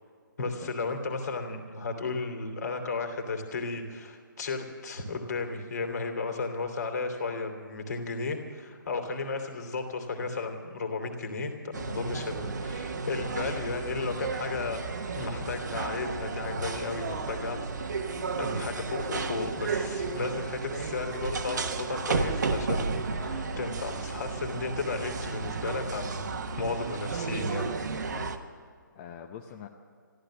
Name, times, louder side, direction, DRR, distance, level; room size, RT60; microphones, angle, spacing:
voice 1, 0.4-14.8 15.1-17.6 18.4-23.0 23.3-26.2 26.6-27.7, left 3 dB, 55° left, 4 dB, 2.8 m, -34 dB
sound 1, 11.7-28.4, right 4 dB, 60° right, 1.3 m, -33 dB
voice 2, 22.7-23.7 28.0-29.7, left 8 dB, 25° left, 3 dB, 0.8 m, -46 dB
14.5 x 12.5 x 7.4 m, 2.1 s
figure-of-eight pair, 140°, 11 cm